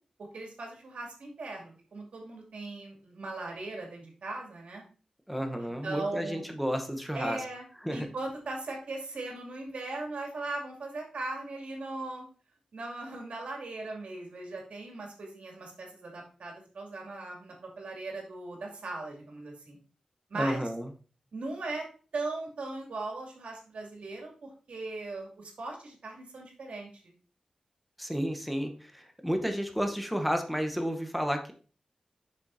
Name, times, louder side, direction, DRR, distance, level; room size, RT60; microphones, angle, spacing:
voice 1, 0.3-4.8 5.6-6.4 7.1-7.6 7.9-12.2 12.7-19.8 20.3-20.6 21.3-21.9 22.1-27.1, right 2 dB, 80° right, 0 dB, 2.3 m, -39 dB
voice 2, 5.3-7.4 7.8-8.1 20.3-20.9 28.0-31.5, equal, ahead, 5 dB, 0.9 m, -31 dB
7.2 x 6.2 x 2.7 m, 0.38 s
wide cardioid pair, 125°, 2 cm